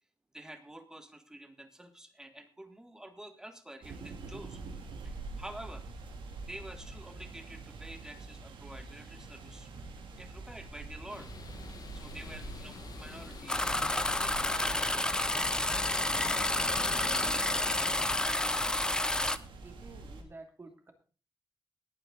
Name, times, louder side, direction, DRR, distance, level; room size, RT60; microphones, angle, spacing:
voice 1, 0.3-4.6 5.0-5.8 6.5-9.7 10.2-11.3 11.9-15.1, right 1 dB, 5° right, 8 dB, 1.8 m, -48 dB
sound 1, 3.8-20.2, right 3 dB, 80° right, 2.7 m, -46 dB
sound 2, 11.1-18.2, left 6 dB, 50° left, 1.1 m, -46 dB
sound 3, 13.5-19.4, left 1 dB, 10° left, 0.7 m, -30 dB
voice 2, 17.0-18.8 19.6-20.9, right 3 dB, 30° right, 5 dB, 2.7 m, -52 dB
19.0 x 9.0 x 3.9 m, 0.37 s
wide cardioid pair, 150°, 8 cm